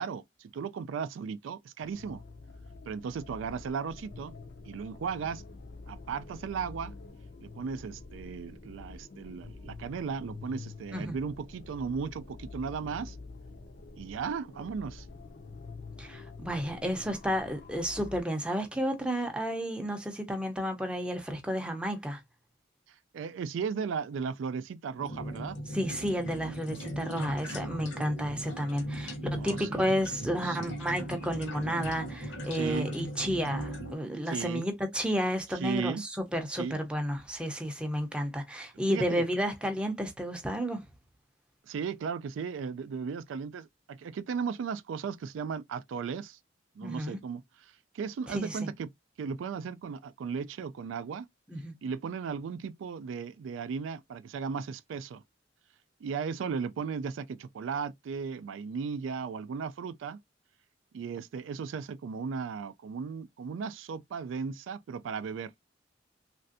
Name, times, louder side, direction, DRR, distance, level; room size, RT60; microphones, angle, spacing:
voice 1, 0.0-2.2 2.9-4.4 4.7-5.4 5.9-6.9 7.4-13.2 14.0-15.1 22.9-25.6 29.4-29.8 30.4-30.7 32.5-32.9 34.3-34.7 35.6-36.0 36.6-36.8 38.9-39.2 41.6-46.4 46.8-48.9 49.2-51.3 51.8-55.2 56.0-60.2 60.9-65.5, right 6 dB, 85° right, 0.3 m, -36 dB
sound 1, 1.8-18.2, left 3 dB, 55° left, 0.5 m, -47 dB
voice 2, 16.0-22.2 25.7-40.8 46.8-47.2 48.3-48.7 51.5-51.7, equal, 5° right, 0.5 m, -32 dB
sound 2, 25.0-34.0, equal, 75° left, 1.0 m, -38 dB
3.2 x 2.5 x 2.5 m
head